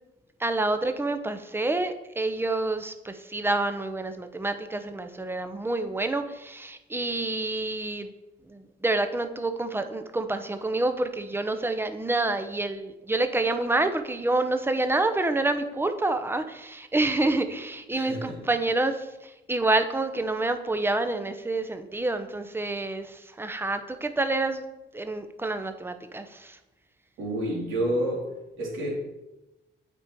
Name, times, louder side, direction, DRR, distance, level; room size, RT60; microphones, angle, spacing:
voice 1, 0.4-8.1 8.5-24.6 24.9-26.6, right 2 dB, 10° right, 8 dB, 0.8 m, -28 dB
voice 2, 17.9-18.4 27.2-28.3 28.6-28.9, right 1 dB, 85° right, -3 dB, 3.0 m, -29 dB
8.5 x 5.0 x 4.7 m, 0.99 s
cardioid pair, 90°, 20 cm